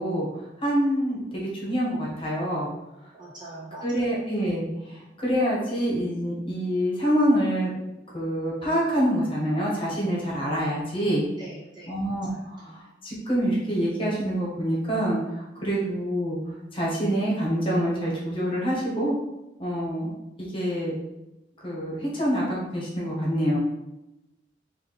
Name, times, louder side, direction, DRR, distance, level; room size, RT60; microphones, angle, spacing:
voice 1, 0.0-2.7 3.8-7.7 8.1-11.2 11.9-19.2 19.6-20.1 20.4-20.9 21.6-23.6, equal, 30° left, -5 dB, 1.3 m, -26 dB
voice 2, 3.1-3.8 11.4-11.9 12.3-12.4 12.7-12.8, right 2 dB, 25° right, -5 dB, 0.9 m, -42 dB
3.7 x 2.7 x 4.0 m, 0.94 s
head